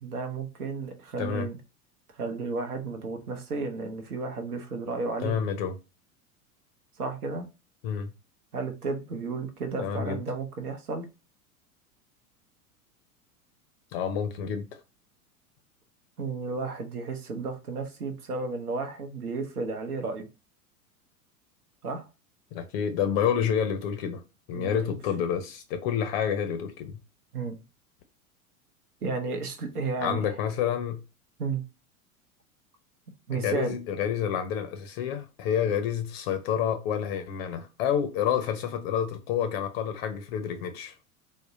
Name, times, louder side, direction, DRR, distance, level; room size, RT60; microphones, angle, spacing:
voice 1, 0.0-1.6 2.1-5.4 7.0-7.5 8.5-11.1 16.2-20.3 21.8-22.1 24.5-24.9 27.3-27.6 29.0-30.3 31.4-31.6 33.3-33.8, right 4 dB, 80° right, 0.8 m, -33 dB
voice 2, 5.2-5.8 7.8-8.1 9.8-10.2 13.9-14.7 22.5-24.2 24.5-27.0 30.0-31.0 33.3-40.9, left 8 dB, 45° left, 0.5 m, -29 dB
3.5 x 2.0 x 2.6 m
figure-of-eight pair, 85°, 44 cm